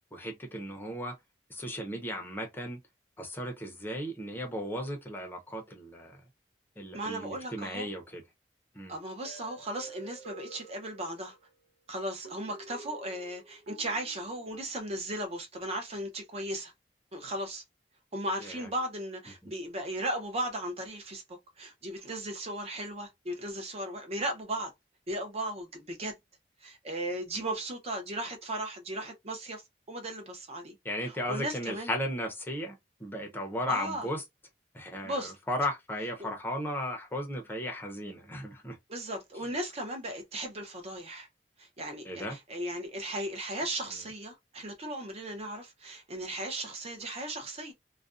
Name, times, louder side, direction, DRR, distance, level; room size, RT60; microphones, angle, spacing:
voice 1, 0.1-1.2 1.5-2.8 3.2-6.2 6.8-8.2 8.7-8.9 18.4-18.7 19.4-19.5 30.8-34.2 34.7-38.8 42.0-42.4, equal, 10° left, 0.6 m, -35 dB
voice 2, 6.9-7.9 8.9-11.4 11.9-16.7 17.1-17.6 18.1-24.7 25.1-26.1 26.6-29.6 29.9-30.8 31.0-31.9 33.7-34.1 35.0-35.3 38.9-41.3 41.6-47.7, right 1 dB, 35° right, 0.7 m, -36 dB
sound 1, 9.2-11.4 12.2-15.4, right 3 dB, 60° right, 1.1 m, -50 dB
2.4 x 2.2 x 2.4 m
head